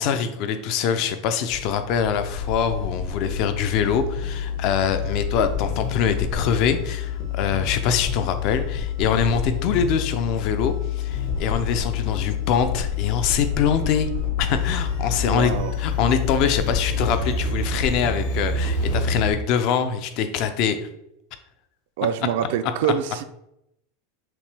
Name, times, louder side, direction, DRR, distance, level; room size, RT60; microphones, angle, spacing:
voice 1, 0.0-14.1 14.4-15.5 15.8-20.9, left 7 dB, 45° left, 9 dB, 0.5 m, -24 dB
sound 1, 1.5-19.3, left 6 dB, 60° left, 1.3 m, -27 dB
voice 2, 15.2-15.8 22.0-23.2, right 9 dB, 65° right, 11 dB, 0.4 m, -25 dB
5.9 x 2.2 x 3.3 m, 0.80 s
supercardioid pair, 160°, 0 cm